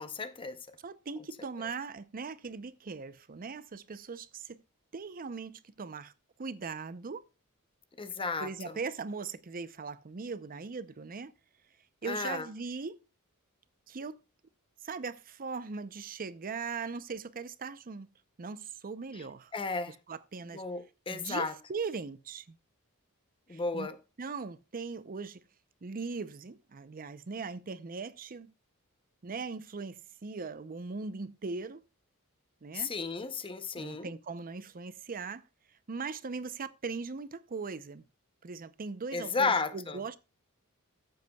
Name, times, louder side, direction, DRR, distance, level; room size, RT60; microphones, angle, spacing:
voice 1, 0.0-0.8 8.0-8.8 12.0-12.5 19.1-19.2 19.5-20.0 20.5-21.5 23.5-24.0 32.7-34.1 39.1-40.0, left 4 dB, 25° left, 0.7 m, -33 dB
voice 2, 0.8-4.6 4.9-6.1 6.4-7.2 8.4-11.3 12.0-13.0 13.9-14.2 14.8-18.1 18.4-19.5 19.9-20.6 21.1-22.6 23.5-23.9 24.2-25.4 25.8-28.5 29.2-31.8 32.6-32.9 33.8-35.4 35.9-38.0 38.4-40.2, right 4 dB, 40° right, 0.6 m, -39 dB
14.5 x 7.9 x 2.3 m
head